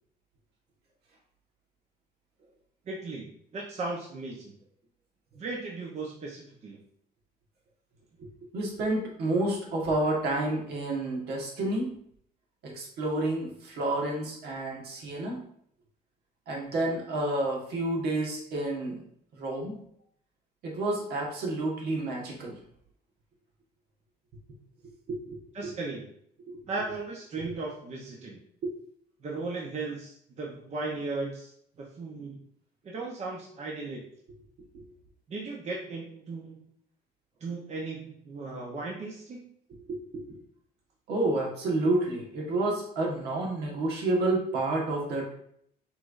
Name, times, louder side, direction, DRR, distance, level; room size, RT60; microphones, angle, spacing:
voice 1, 2.9-4.5 5.3-6.8 25.5-26.1 26.7-28.4 29.2-31.5 31.8-32.4 32.8-34.0 35.3-36.7 37.4-39.4, right 3 dB, 40° right, -2 dB, 0.9 m, -36 dB
voice 2, 8.5-11.9 12.6-15.4 16.5-19.0 19.3-19.8 20.6-22.5 25.1-25.4 25.6-25.7 26.5-26.6 27.4-27.5 28.6-28.7 34.7-34.8 39.9-40.4 41.1-45.3, right 2 dB, 70° right, -1 dB, 1.5 m, -30 dB
5.8 x 3.3 x 2.6 m, 0.67 s
cardioid pair, 110°, 17 cm